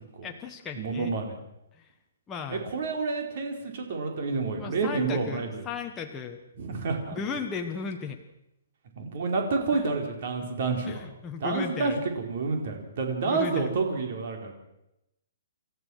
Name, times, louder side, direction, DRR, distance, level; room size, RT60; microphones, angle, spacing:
voice 1, 0.2-1.1 1.7-1.9 2.3-2.7 4.6-6.4 7.1-8.2 9.7-9.9 10.8-12.0 13.2-13.7, left 6 dB, 10° left, 2 dB, 1.1 m, -36 dB
voice 2, 0.8-1.3 2.5-5.6 6.6-7.1 9.0-11.0 11.4-12.0 12.3-14.5, right 4 dB, 45° right, 3 dB, 4.5 m, -29 dB
28.5 x 14.0 x 6.5 m, 0.87 s
hypercardioid pair, 170°, 0 cm